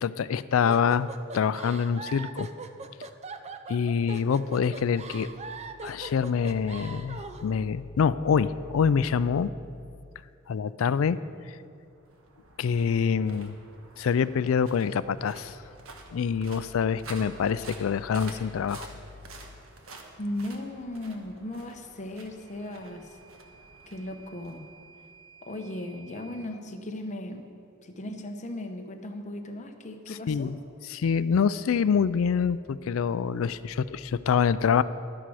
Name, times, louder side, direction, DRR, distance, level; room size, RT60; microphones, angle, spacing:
voice 1, 0.0-2.5 3.7-5.3 5.8-9.5 10.5-11.2 11.5-11.6 12.6-13.5 14.0-15.6 16.1-18.9 30.3-30.5 30.9-34.8, left 6 dB, 70° left, 15 dB, 0.4 m, -26 dB
sound 1, 0.7-7.5, right 4 dB, 30° right, 0.5 m, -41 dB
sound 2, 11.8-25.2, right 3 dB, 75° right, 1.3 m, -49 dB
voice 2, 20.2-23.2 23.9-24.7 25.4-27.5 27.8-30.5, left 1 dB, 35° left, 4 dB, 0.9 m, -37 dB
Microwave oven / Alarm, 22.4-26.5, right 6 dB, 10° left, 1.4 m, -55 dB
11.5 x 10.0 x 4.8 m, 2.5 s
head